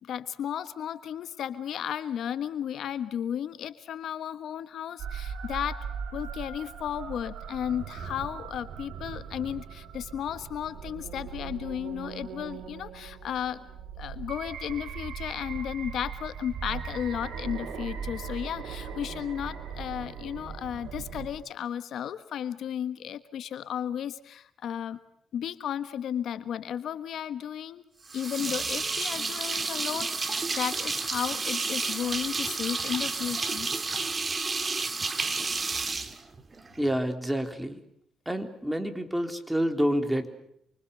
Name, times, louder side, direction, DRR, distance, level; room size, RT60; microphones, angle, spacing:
voice 1, 0.0-5.8 6.1-13.6 14.0-25.0 25.3-27.8 28.1-33.7, left 9 dB, 70° left, 13 dB, 1.4 m, -34 dB
sound 1, 5.0-21.3, right 6 dB, 75° right, 4.0 m, -39 dB
sound 2, 28.1-36.9, right 4 dB, 30° right, 2.6 m, -31 dB
voice 2, 36.8-37.8 38.3-40.3, equal, 5° right, 6 dB, 3.8 m, -28 dB
29.0 x 24.5 x 6.9 m, 0.74 s
cardioid pair, 90°, 0 cm